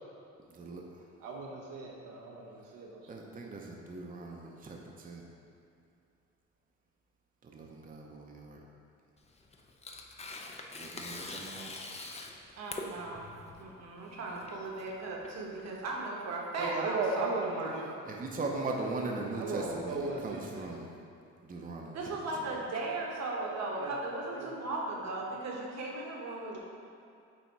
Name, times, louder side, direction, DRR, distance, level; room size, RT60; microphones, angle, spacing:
voice 1, 0.5-1.1 2.6-2.8 3.1-5.3 7.4-8.6 10.7-11.7 18.0-20.9 21.4-22.5, right 3 dB, 30° right, 0 dB, 0.7 m, -40 dB
voice 2, 1.2-3.3 16.6-17.8 19.3-20.7 23.4-24.5 24.9-25.4, right 3 dB, 90° right, -2 dB, 1.0 m, -37 dB
Tearing, 9.2-16.0, left 2 dB, 20° left, 0.5 m, -44 dB
voice 3, 12.6-13.3 13.6-17.3 17.5-17.9 21.9-26.6, right 2 dB, 60° right, -2 dB, 1.2 m, -37 dB
8.3 x 2.8 x 4.6 m, 2.5 s
cardioid pair, 90°, 30 cm